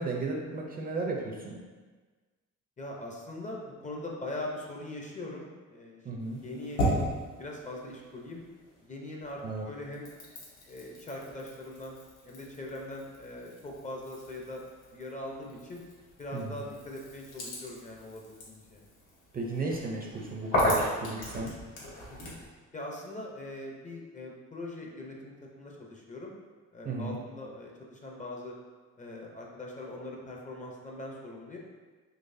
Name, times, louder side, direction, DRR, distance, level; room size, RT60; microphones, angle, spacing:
voice 1, 0.0-1.6 6.1-6.4 9.4-9.7 16.3-16.6 19.3-21.5 26.8-27.2, right 3 dB, 30° right, -1 dB, 0.5 m, -34 dB
voice 2, 2.8-7.0 7.4-8.4 8.9-10.1 10.7-12.0 12.2-14.6 14.9-15.8 16.2-18.8 22.1-22.3 22.7-26.3 26.7-28.5 29.0-31.6, left 1 dB, 25° left, -1 dB, 0.5 m, -41 dB
sound 1, 6.2-8.9 9.2-22.5, equal, 85° left, 1.2 m, -36 dB
3.9 x 3.1 x 2.6 m, 1.4 s
cardioid pair, 110°, 31 cm